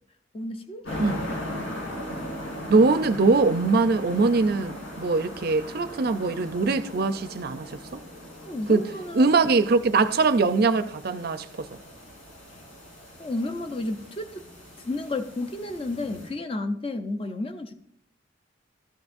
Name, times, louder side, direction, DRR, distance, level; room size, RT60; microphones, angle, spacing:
voice 1, 0.3-1.7 8.4-9.7 13.2-14.4 14.8-17.7, left 2 dB, 30° left, 0.6 m, -32 dB
sound 1, 0.9-16.3, left 1 dB, 80° left, 3.5 m, -39 dB
voice 2, 2.7-8.0 8.7-8.9 9.1-11.7, right 3 dB, 50° right, 0.5 m, -22 dB
13.5 x 12.0 x 2.6 m
head